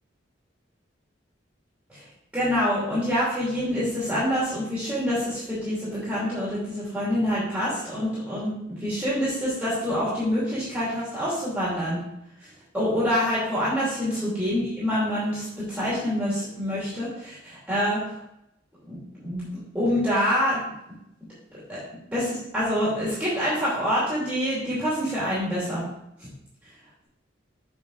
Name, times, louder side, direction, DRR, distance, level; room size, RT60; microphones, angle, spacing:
voice 1, 2.3-12.0 12.4-12.5 12.7-18.2 18.8-20.6 21.7-21.8 22.1-25.8 26.2-26.3, equal, 5° right, -10 dB, 2.8 m, -26 dB
7.2 x 6.2 x 4.0 m, 0.81 s
head